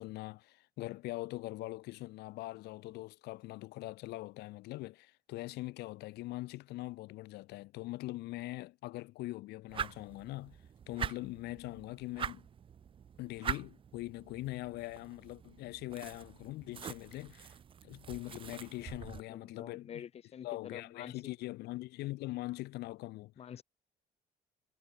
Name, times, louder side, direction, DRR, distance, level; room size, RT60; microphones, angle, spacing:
voice 1, 0.0-10.6 10.9-12.5 13.2-17.6 17.8-20.0 20.4-23.3, left 19 dB, 75° left, 0.5 m, -42 dB
sound 1, 9.7-19.2, right 8 dB, 30° right, 0.4 m, -44 dB
voice 2, 18.8-21.1 23.4-23.6, left 9 dB, 40° left, 0.6 m, -48 dB
cardioid pair, 110°, 17 cm